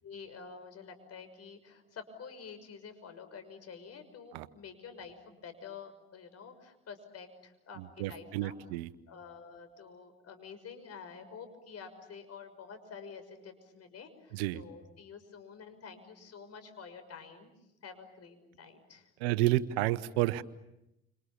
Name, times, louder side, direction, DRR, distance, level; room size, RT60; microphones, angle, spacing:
voice 1, 0.0-8.6 9.1-17.5 17.8-19.1, left 6 dB, 50° left, 9 dB, 6.1 m, -49 dB
voice 2, 7.8-8.9 14.3-14.6 19.2-20.4, right 16 dB, 80° right, 15 dB, 1.1 m, -30 dB
30.0 x 27.5 x 7.1 m, 0.87 s
hypercardioid pair, 60°, 31 cm